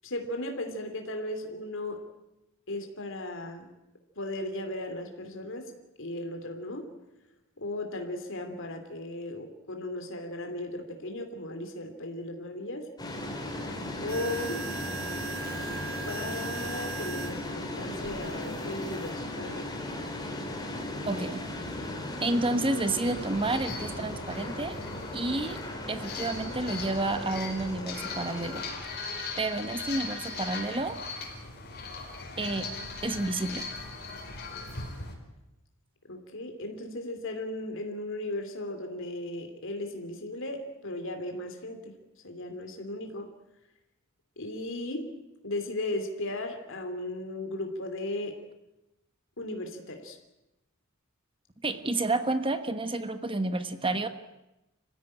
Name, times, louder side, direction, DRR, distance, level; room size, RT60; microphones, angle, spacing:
voice 1, 0.0-2.1 2.7-3.7 4.1-5.7 6.0-6.9 7.6-12.9 14.0-14.7 16.1-19.7 36.1-42.0 42.2-43.3 44.4-45.1 45.4-48.4 49.4-50.2, left 1 dB, 65° left, 5 dB, 3.1 m, -36 dB
sound 1, 13.0-28.7, left 1 dB, 20° left, 4.1 m, -37 dB
sound 2, 14.1-17.3 18.0-19.1, right 4 dB, 50° right, 7.3 m, -39 dB
voice 2, 21.0-21.4 22.2-24.8 25.1-25.6 25.9-28.6 29.4-31.0 32.4-32.7 33.0-33.7 51.6-54.1, right 2 dB, 25° right, 10 dB, 1.2 m, -30 dB
sound 3, 23.0-35.1, left 3 dB, 50° left, 5.2 m, -39 dB
25.5 x 16.0 x 9.9 m, 0.94 s
head